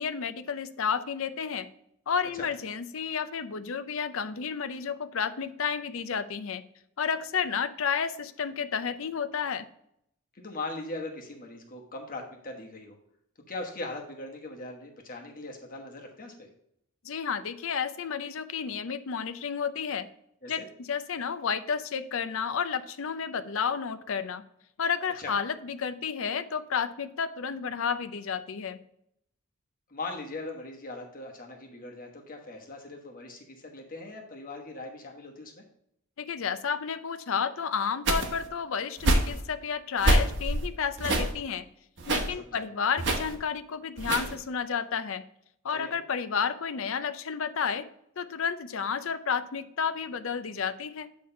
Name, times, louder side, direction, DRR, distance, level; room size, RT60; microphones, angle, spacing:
voice 1, 0.0-1.7 2.1-6.6 7.0-9.7 17.0-20.1 20.5-24.4 24.8-28.8 36.2-41.7 42.1-45.2 45.6-47.9 48.2-51.1, left 6 dB, 70° left, 12 dB, 0.6 m, -31 dB
voice 2, 10.3-13.0 13.5-16.5 20.4-20.6 25.2-25.3 29.9-35.6 42.4-42.7 45.7-45.9, left 2 dB, 40° left, 1 dB, 1.3 m, -40 dB
sound 1, 38.1-38.5 39.0-39.4 40.0-40.7 41.0-41.3 42.0-42.3 43.0-43.4 44.0-44.4, right 1 dB, 60° right, 1.2 m, -26 dB
8.7 x 3.4 x 5.5 m, 0.72 s
head